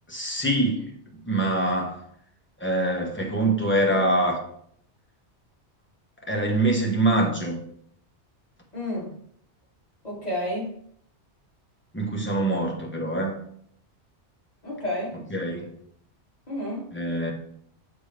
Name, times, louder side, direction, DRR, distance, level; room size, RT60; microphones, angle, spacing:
voice 1, 0.1-0.9 1.2-2.0 2.6-4.4 6.2-7.6 11.9-13.4 15.3-15.7 16.9-17.3, right 1 dB, 10° left, 0 dB, 1.2 m, -24 dB
voice 2, 8.7-9.1 10.0-10.7 14.6-15.2 16.5-16.9, left 1 dB, 35° left, -6 dB, 2.7 m, -30 dB
7.4 x 3.3 x 5.1 m, 0.65 s
omnidirectional pair, 1.2 m